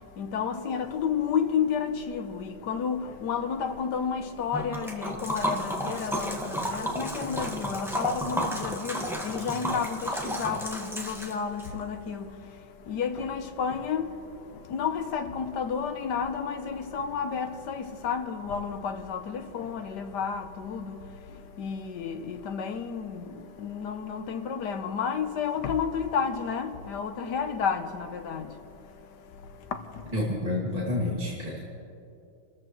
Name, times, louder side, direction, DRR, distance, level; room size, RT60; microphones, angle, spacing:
voice 1, 0.2-12.4 12.9-14.1 14.7-21.1 21.6-28.5, left 6 dB, 65° left, 1.4 m, -31 dB
Liquid, 4.5-11.7, right 1 dB, ahead, 1.1 m, -32 dB
voice 2, 30.1-31.6, left 1 dB, 20° right, 2.1 m, -29 dB
29.5 x 14.0 x 3.1 m
omnidirectional pair, 2.2 m